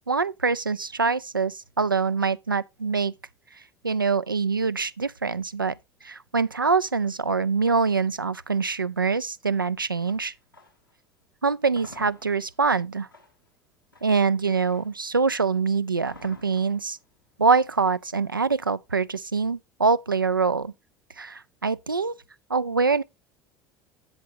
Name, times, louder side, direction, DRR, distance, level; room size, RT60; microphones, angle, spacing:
voice 1, 0.1-3.1 3.8-5.7 6.0-10.3 11.4-13.1 14.0-17.0 17.4-20.7 21.2-22.2 22.5-23.0, right 4 dB, 85° right, 0.4 m, -24 dB
sound 1, 6.8-11.0 11.4-19.3, left 1 dB, 90° left, 1.7 m, -53 dB
10.5 x 8.3 x 2.8 m
figure-of-eight pair, 65°, 11 cm